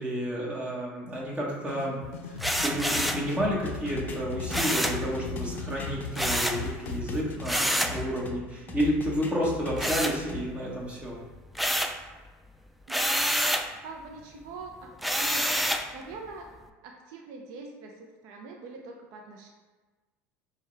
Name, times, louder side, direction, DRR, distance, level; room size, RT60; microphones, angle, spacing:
voice 1, 0.0-11.2, equal, 15° right, -4 dB, 1.4 m, -31 dB
sound 1, 1.7-7.2, left 4 dB, 85° left, 0.5 m, -38 dB
sound 2, 2.4-3.3 4.5-5.0 6.1-6.6 7.4-8.0 9.8-10.6 11.0-12.0 12.9-13.7 15.0-15.9, equal, ahead, 0.3 m, -27 dB
sound 3, 3.6-8.4 8.7-10.4, left 4 dB, 25° left, 0.7 m, -39 dB
voice 2, 13.8-14.9 15.2-16.5 16.8-19.5, right 3 dB, 65° right, 1 dB, 0.5 m, -44 dB
6.2 x 2.3 x 3.3 m, 1.3 s
supercardioid pair, 95°, 7 cm